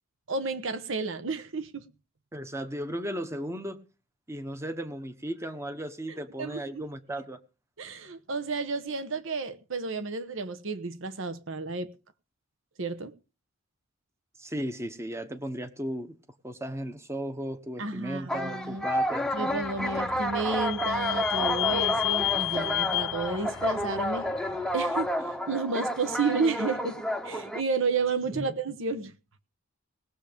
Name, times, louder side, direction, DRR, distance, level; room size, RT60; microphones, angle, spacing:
voice 1, 0.3-1.8 6.1-6.8 7.8-11.9 12.8-13.1 17.8-18.9 19.3-24.3 24.7-27.0 27.2-29.1, right 4 dB, 65° right, 1.1 m, -31 dB
voice 2, 2.3-3.8 4.3-7.4 14.4-16.1 16.4-19.3 28.3-28.5, equal, 15° right, 1.0 m, -35 dB
sound 1, 18.3-27.6, equal, 5° left, 0.7 m, -30 dB
Vehicle / Squeak, 19.2-24.8, left 17 dB, 65° left, 0.7 m, -32 dB
19.0 x 7.1 x 5.2 m
head